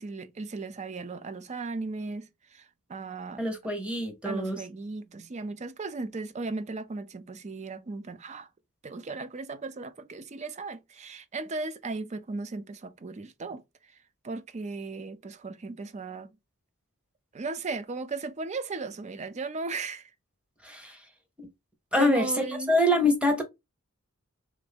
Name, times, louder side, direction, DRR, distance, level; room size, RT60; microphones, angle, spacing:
voice 1, 0.0-3.4 4.2-8.5 8.8-13.6 14.2-16.3 17.3-20.1 22.0-22.7, right 3 dB, 30° right, 0.4 m, -36 dB
voice 2, 3.4-4.6 20.6-21.0 21.4-21.5 21.9-23.4, left 1 dB, 5° right, 0.9 m, -25 dB
3.4 x 2.6 x 3.4 m
head